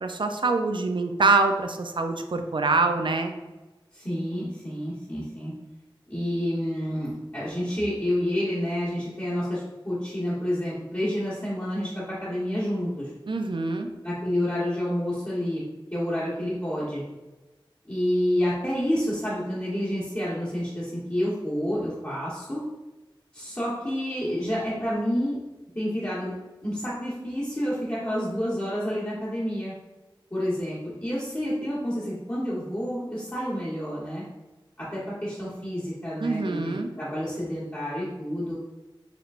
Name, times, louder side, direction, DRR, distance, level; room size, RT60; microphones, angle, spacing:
voice 1, 0.0-3.3 13.3-13.9 36.2-36.9, right 3 dB, 60° right, 5 dB, 0.4 m, -25 dB
voice 2, 3.9-5.5 6.1-13.1 14.0-15.6 15.9-17.0 17.9-22.6 23.3-25.4 25.7-26.3 26.6-29.7 30.3-34.2 34.8-38.5, equal, 30° left, -10 dB, 1.2 m, -29 dB
5.0 x 3.2 x 2.5 m, 1.1 s
wide cardioid pair, 60°, 9 cm